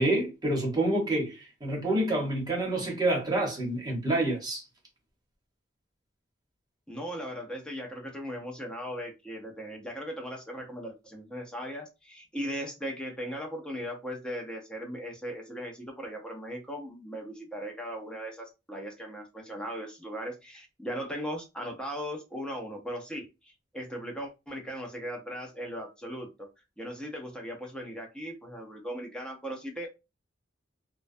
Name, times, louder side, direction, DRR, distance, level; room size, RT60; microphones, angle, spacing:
voice 1, 0.0-4.6, right 1 dB, 20° right, 1.0 m, -28 dB
voice 2, 6.9-26.5 26.8-29.9, equal, 5° left, 0.6 m, -38 dB
2.2 x 2.1 x 2.5 m
head